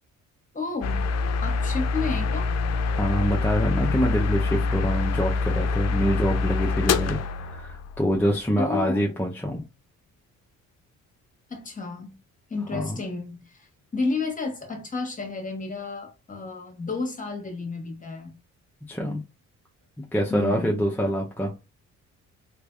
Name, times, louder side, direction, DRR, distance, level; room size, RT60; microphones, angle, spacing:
voice 1, 0.5-1.1 1.4-2.5 8.6-9.2 11.5-12.2 12.5-18.3 20.3-20.9, left 3 dB, 25° left, 1.2 m, -31 dB
sound 1, 0.8-8.2, left 4 dB, 60° left, 0.5 m, -25 dB
voice 2, 2.9-9.6 12.7-13.0 18.9-19.2 20.0-21.5, equal, 5° left, 0.6 m, -26 dB
3.3 x 3.1 x 2.4 m
cardioid pair, 90°, 30 cm